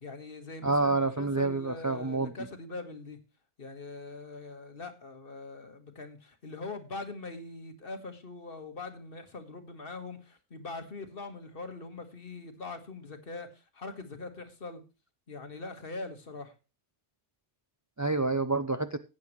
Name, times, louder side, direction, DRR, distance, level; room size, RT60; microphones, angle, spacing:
voice 1, 0.0-3.2 3.6-14.8 15.3-16.5, left 3 dB, 50° left, 1.7 m, -42 dB
voice 2, 0.6-2.3 18.0-19.0, right 3 dB, 30° right, 0.3 m, -28 dB
14.5 x 8.9 x 3.1 m
omnidirectional pair, 1.2 m